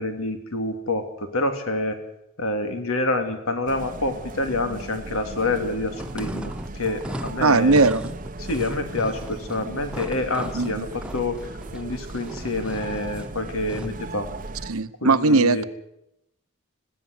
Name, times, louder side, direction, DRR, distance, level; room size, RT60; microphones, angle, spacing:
voice 1, 0.0-2.0 2.4-7.9 8.4-11.4 11.7-14.3 15.0-15.7, left 2 dB, 70° left, 6 dB, 2.8 m, -27 dB
sound 1, 3.7-14.7, right 2 dB, 40° right, 0.9 m, -37 dB
sound 2, 5.9-14.0, equal, 5° right, 1.0 m, -37 dB
voice 2, 7.4-8.1 10.5-10.7 14.7-15.6, right 3 dB, 80° right, 12 dB, 1.0 m, -19 dB
21.0 x 16.0 x 8.0 m, 0.80 s
head